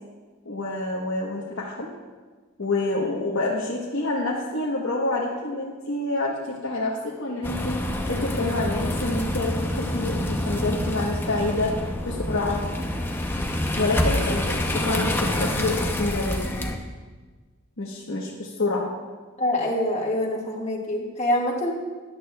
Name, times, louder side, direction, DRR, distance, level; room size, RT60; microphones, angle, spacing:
voice 1, 0.5-1.9 2.6-11.7 12.1-12.6 13.8-16.5 17.8-18.9, left 2 dB, 70° left, -4 dB, 1.0 m, -27 dB
sound 1, 7.4-16.8, left 1 dB, 10° left, 0.6 m, -27 dB
voice 2, 19.4-21.7, left 1 dB, 35° left, -2 dB, 1.5 m, -25 dB
13.0 x 10.5 x 2.3 m, 1.4 s
head